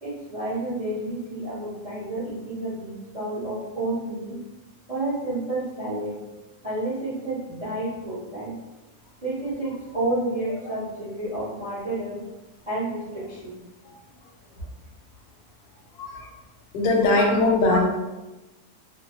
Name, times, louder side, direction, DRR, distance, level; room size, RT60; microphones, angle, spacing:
voice 1, 0.0-4.4 4.9-6.2 6.6-8.6 9.2-12.2 12.7-13.5 17.2-17.3 17.7-17.8, right 2 dB, 45° right, -10 dB, 0.4 m, -30 dB
voice 2, 15.9-16.3 16.7-17.8, left 2 dB, 80° left, 0 dB, 1.2 m, -21 dB
2.6 x 2.0 x 2.7 m, 1.1 s
omnidirectional pair, 1.7 m